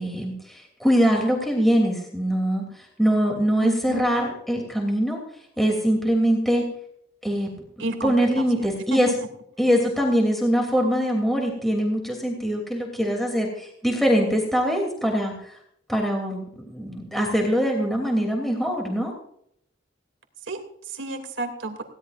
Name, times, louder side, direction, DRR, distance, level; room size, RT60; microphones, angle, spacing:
voice 1, 0.0-2.6 3.0-5.2 5.6-6.6 7.2-7.5 8.0-9.1 9.6-15.5 15.9-19.1, equal, ahead, 0 dB, 3.0 m, -23 dB
voice 2, 3.6-4.1 7.8-9.1 20.4-21.8, right 1 dB, 85° right, 5 dB, 2.7 m, -32 dB
20.5 x 17.0 x 2.6 m, 0.68 s
head